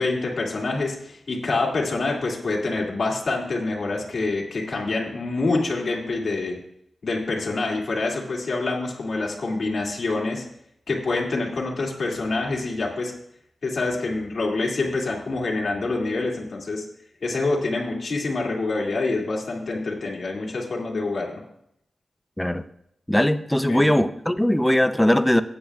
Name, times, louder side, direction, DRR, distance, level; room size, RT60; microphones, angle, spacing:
voice 1, 0.0-6.6 7.0-10.4 10.9-13.1 13.6-16.8 17.2-21.4 23.7-23.9, left 3 dB, 55° left, 2.3 m, -26 dB
voice 2, 23.1-25.4, left 1 dB, 5° left, 0.5 m, -20 dB
15.5 x 8.7 x 2.3 m
wide cardioid pair, 95°, 0 cm